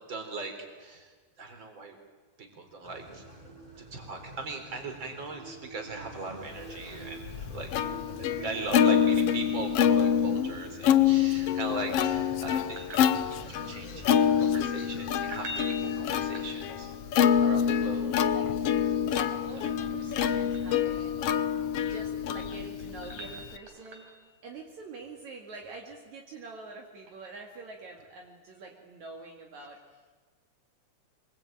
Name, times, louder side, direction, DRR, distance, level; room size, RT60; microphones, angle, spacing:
voice 1, 0.1-0.5 0.8-1.1 1.4-2.0 2.4-3.2 3.9-7.7 8.2-14.1 14.4-16.9 17.4-18.1, right 3 dB, 35° right, 4 dB, 4.5 m, -39 dB
sound 1, 2.8-14.8, right 2 dB, 10° right, 4.4 m, -47 dB
Plucked string instrument, 6.8-23.6, left 8 dB, 65° left, 1.7 m, -26 dB
voice 2, 8.3-9.2 17.7-18.7 19.1-21.2 21.8-24.1 24.4-29.8, right 3 dB, 65° right, 1 dB, 3.4 m, -45 dB
sound 2, 12.5-13.7 15.2-17.0 19.1-20.8 22.2-24.3 27.0-27.1, equal, 85° right, 5.2 m, -44 dB
26.5 x 22.0 x 9.0 m, 1.4 s
omnidirectional pair, 3.6 m